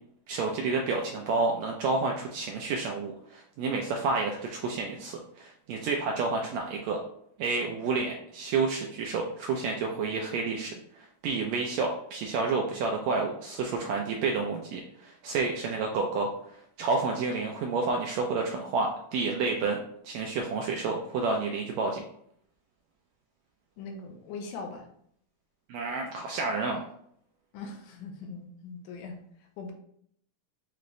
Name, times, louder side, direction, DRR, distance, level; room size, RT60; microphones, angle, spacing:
voice 1, 0.3-7.0 7.4-10.7 11.2-16.3 16.8-19.8 20.0-22.0 25.7-26.8, right 4 dB, 80° right, 1 dB, 1.6 m, -30 dB
voice 2, 23.8-24.8 27.5-29.2 29.6-29.7, left 4 dB, 90° left, 3 dB, 2.2 m, -40 dB
6.6 x 2.5 x 3.0 m, 0.67 s
omnidirectional pair, 3.6 m